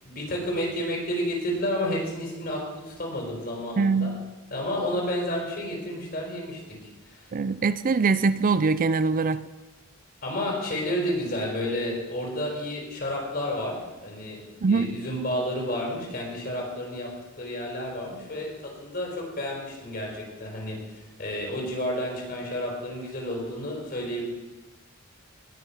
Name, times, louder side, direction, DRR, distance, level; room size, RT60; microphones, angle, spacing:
voice 1, 0.0-4.1 4.5-6.6 7.1-7.3 10.2-17.1 17.4-24.2, left 1 dB, 45° left, -1 dB, 4.3 m, -31 dB
voice 2, 3.8-4.2 7.3-9.4 14.6-14.9, right 4 dB, 40° right, 15 dB, 0.4 m, -23 dB
19.0 x 6.8 x 5.7 m, 1.2 s
head